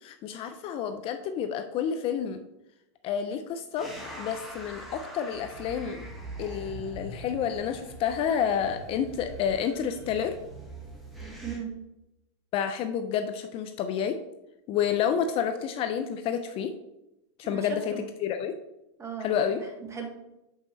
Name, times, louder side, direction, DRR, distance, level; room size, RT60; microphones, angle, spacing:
voice 1, 0.0-2.4 3.0-3.9 4.2-6.1 6.4-10.4 12.5-14.2 14.7-16.7 17.4-17.9 18.2-18.6 19.2-19.6, left 8 dB, 40° left, 8 dB, 0.5 m, -29 dB
sound 1, 3.8-11.6, right 2 dB, ahead, 1.7 m, -43 dB
voice 2, 11.4-11.8 17.4-18.1 19.0-20.1, right 6 dB, 20° right, 3 dB, 1.3 m, -38 dB
7.3 x 5.4 x 3.2 m, 0.89 s
supercardioid pair, 120°, 15 cm